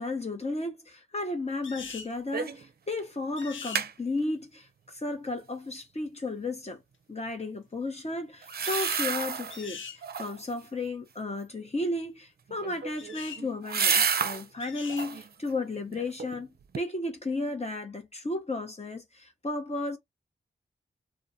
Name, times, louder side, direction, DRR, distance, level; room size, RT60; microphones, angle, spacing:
voice 1, 0.0-6.8 7.1-16.5 16.8-20.0, left 2 dB, 30° left, 0.8 m, -34 dB
sound 1, 1.6-2.1 3.4-3.8 8.6-9.1 9.5-10.0 13.0-13.4 14.6-15.1, left 6 dB, 70° left, 0.6 m, -42 dB
sound 2, 2.3-2.7 3.0-3.1 3.4-3.9 8.4-9.6 10.0-10.5 12.5-14.4 14.8-15.3 15.8-16.4 16.7-16.8, right 6 dB, 50° right, 0.5 m, -30 dB
2.4 x 2.2 x 2.6 m
cardioid pair, 45°, 21 cm